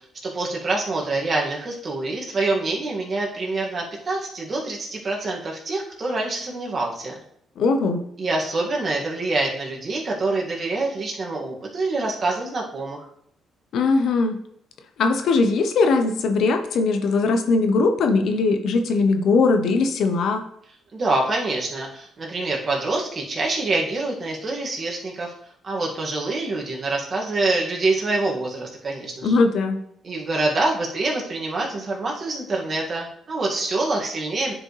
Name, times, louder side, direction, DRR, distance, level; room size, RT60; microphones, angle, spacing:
voice 1, 0.2-7.1 8.2-13.0 20.9-25.3 25.6-29.4 30.0-34.5, right 2 dB, 40° right, -1 dB, 2.0 m, -26 dB
voice 2, 7.6-8.0 13.7-14.4 15.0-20.4 29.2-29.8, left 3 dB, 70° left, 7 dB, 0.9 m, -20 dB
9.7 x 5.1 x 3.3 m, 0.69 s
cardioid pair, 90°, 0 cm